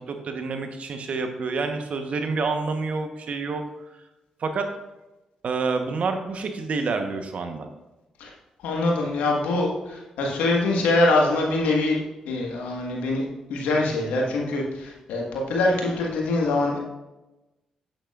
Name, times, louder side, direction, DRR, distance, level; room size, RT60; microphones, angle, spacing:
voice 1, 0.0-3.6 4.4-4.7 5.4-7.7, right 4 dB, 60° right, 6 dB, 1.0 m, -28 dB
voice 2, 8.6-12.0 12.2-13.2 13.5-16.8, left 2 dB, 85° left, -1 dB, 1.6 m, -24 dB
8.7 x 8.5 x 2.5 m, 1.0 s
hypercardioid pair, 45°, 2 cm